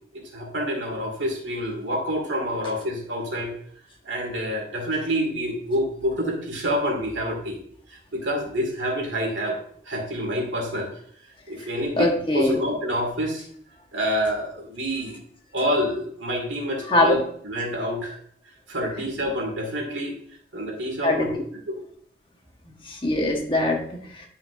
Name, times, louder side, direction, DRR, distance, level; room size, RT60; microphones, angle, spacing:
voice 1, 0.1-3.5 4.0-7.6 7.9-9.6 9.9-10.9 11.5-13.4 13.9-15.2 15.5-17.2 17.4-18.2 18.7-20.2 20.5-21.3 21.7-21.8, equal, 90° right, 0 dB, 2.2 m, -27 dB
voice 2, 12.0-12.6 16.9-17.1 21.0-21.3 22.8-24.3, left 2 dB, 25° left, 1 dB, 1.2 m, -22 dB
10.0 x 5.6 x 2.6 m, 0.63 s
head